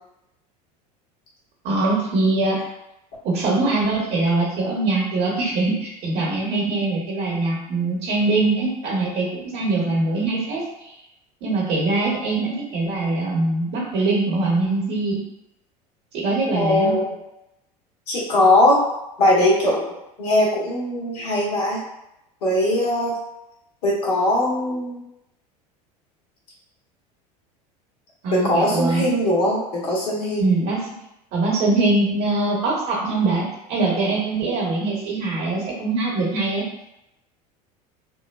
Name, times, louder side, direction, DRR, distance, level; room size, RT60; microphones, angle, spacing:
voice 1, 1.6-2.6 3.2-11.0 11.4-15.2 16.1-16.9 28.2-29.0 30.4-30.9 31.3-33.4 33.7-36.6, right 2 dB, 55° right, -3 dB, 0.7 m, -22 dB
voice 2, 16.5-17.1 18.1-18.8 19.2-19.8 20.2-21.8 22.4-23.2 23.8-25.0 28.3-30.5, left 1 dB, 70° left, -5 dB, 1.2 m, -20 dB
2.9 x 2.1 x 2.2 m, 0.87 s
hypercardioid pair, 80°, 21 cm